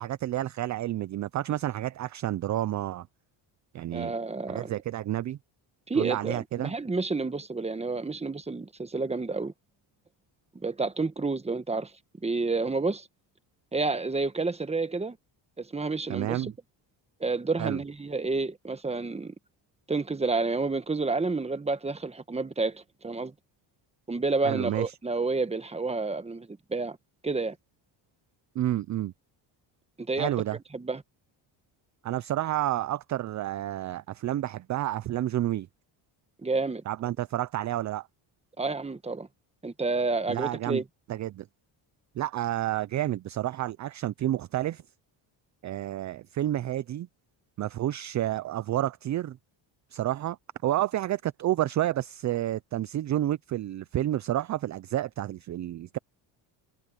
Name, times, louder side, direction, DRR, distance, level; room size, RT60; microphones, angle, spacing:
voice 1, 0.0-3.1 3.7-4.1 4.5-5.4 5.9-6.7 16.1-16.5 17.6-17.8 24.4-24.9 28.6-29.1 30.2-30.6 32.0-35.7 36.9-38.1 40.3-40.8 41.1-41.5 42.2-44.8 45.6-47.1 47.6-49.4 49.9-50.4 50.6-56.0, right 13 dB, 40° right, 0.4 m, -30 dB
voice 2, 3.9-4.7 5.9-9.5 10.5-11.9 12.2-13.1 13.7-15.2 15.6-16.5 17.2-19.3 19.9-23.3 24.1-27.0 27.2-27.6 30.0-30.3 30.7-31.0 36.4-36.8 38.6-39.3 39.6-40.8, right 3 dB, 10° right, 1.2 m, -29 dB
cardioid pair, 120°, 50 cm